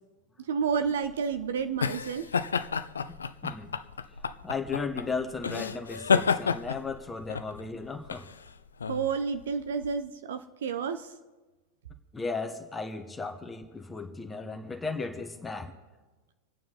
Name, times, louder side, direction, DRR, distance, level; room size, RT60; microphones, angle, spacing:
voice 1, 0.5-2.3 8.9-11.1, right 6 dB, 60° right, 8 dB, 0.8 m, -30 dB
sound 1, 0.7-9.9, left 6 dB, 70° left, 0.5 m, -31 dB
voice 2, 3.4-3.7 4.4-8.3 12.1-15.7, left 4 dB, 10° left, 5 dB, 1.5 m, -35 dB
27.0 x 9.3 x 4.1 m, 1.2 s
figure-of-eight pair, 90°, 0 cm